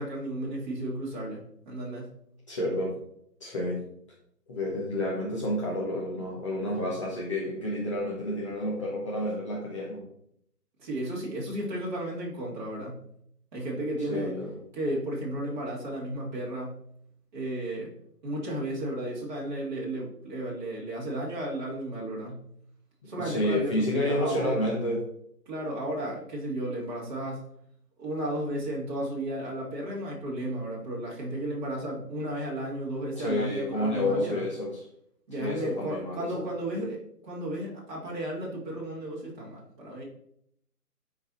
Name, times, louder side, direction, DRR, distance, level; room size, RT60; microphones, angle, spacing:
voice 1, 0.0-2.1 10.8-13.0 13.5-14.3 14.7-16.8 17.3-17.9 18.2-22.4 23.1-24.7 25.5-27.5 28.0-34.4 35.3-37.0 37.2-40.1, right 1 dB, 30° right, -5 dB, 2.7 m, -33 dB
voice 2, 2.5-2.9 3.4-3.8 4.5-10.1 14.1-14.6 23.0-25.1 33.2-34.9 35.4-36.5, left 1 dB, 20° left, -5 dB, 1.2 m, -30 dB
10.5 x 4.8 x 4.2 m, 0.70 s
figure-of-eight pair, 160°, 48 cm